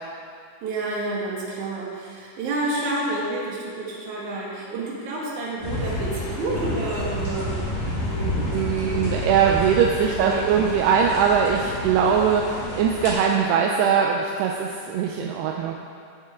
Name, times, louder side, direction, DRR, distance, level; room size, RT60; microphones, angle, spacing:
voice 1, 0.6-9.1 10.1-10.6, right 2 dB, 50° right, -5 dB, 2.8 m, -30 dB
sound 1, 5.6-13.1, left 1 dB, 50° left, 3.4 m, -30 dB
voice 2, 8.5-15.7, right 7 dB, 80° right, 1 dB, 2.4 m, -21 dB
16.0 x 7.7 x 3.7 m, 2.3 s
omnidirectional pair, 5.1 m